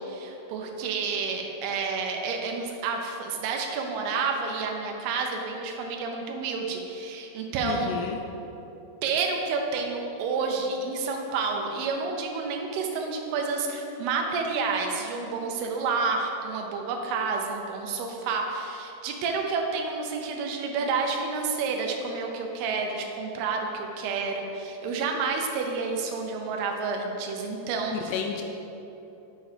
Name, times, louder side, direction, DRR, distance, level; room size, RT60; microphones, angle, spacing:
voice 1, 0.0-7.9 9.0-28.1, right 4 dB, 75° right, 2 dB, 2.7 m, -29 dB
voice 2, 7.6-8.2 27.9-28.4, left 7 dB, 85° left, 3 dB, 2.6 m, -31 dB
10.0 x 4.6 x 5.0 m, 3.0 s
omnidirectional pair, 4.9 m